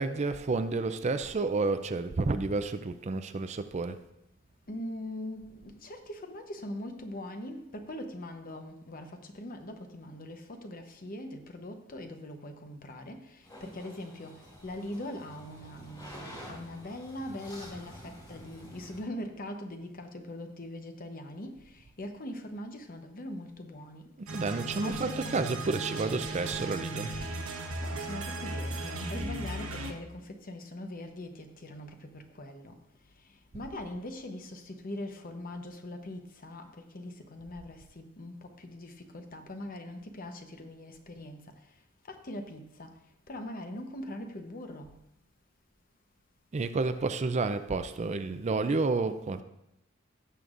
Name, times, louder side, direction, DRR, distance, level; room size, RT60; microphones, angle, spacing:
voice 1, 0.0-4.0 24.2-27.2 46.5-49.4, right 3 dB, 35° right, 10 dB, 0.4 m, -30 dB
voice 2, 4.7-24.1 24.8-25.4 27.8-32.7 33.5-41.4 42.1-42.9 43.3-44.9, left 1 dB, 40° left, 6 dB, 0.9 m, -41 dB
sound 1, 13.4-19.0, equal, 20° left, 2.4 m, -48 dB
sound 2, 24.3-29.9, right 2 dB, 90° right, 1.2 m, -36 dB
17.0 x 6.8 x 2.5 m, 0.82 s
head